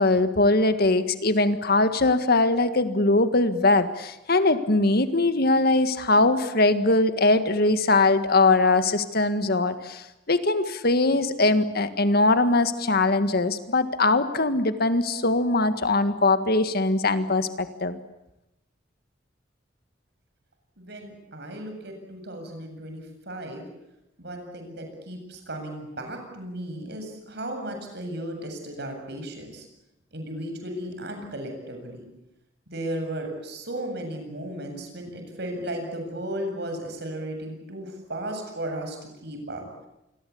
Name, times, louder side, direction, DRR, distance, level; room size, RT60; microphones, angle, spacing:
voice 1, 0.0-18.0, left 2 dB, 55° left, 10 dB, 1.8 m, -21 dB
voice 2, 20.8-23.6 24.2-29.7 30.1-32.1 32.7-39.6, right 1 dB, 65° right, 4 dB, 7.9 m, -35 dB
27.0 x 22.0 x 8.7 m, 0.90 s
head